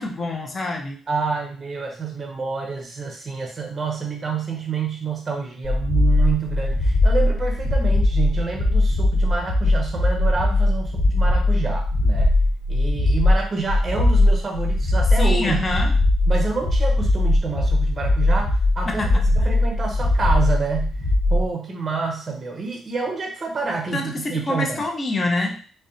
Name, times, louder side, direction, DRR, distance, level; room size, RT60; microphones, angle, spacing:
voice 1, 0.0-1.0 15.2-16.0 18.9-19.2 23.9-25.6, left 2 dB, 35° left, 2 dB, 0.5 m, -26 dB
voice 2, 1.1-12.3 12.7-15.6 16.3-19.0 19.4-20.9 21.3-24.8, right 4 dB, 35° right, 1 dB, 0.5 m, -28 dB
sound 1, 5.6-21.5, left 1 dB, 55° left, 1.0 m, -19 dB
2.5 x 2.1 x 2.5 m, 0.41 s
cardioid pair, 90°, 0 cm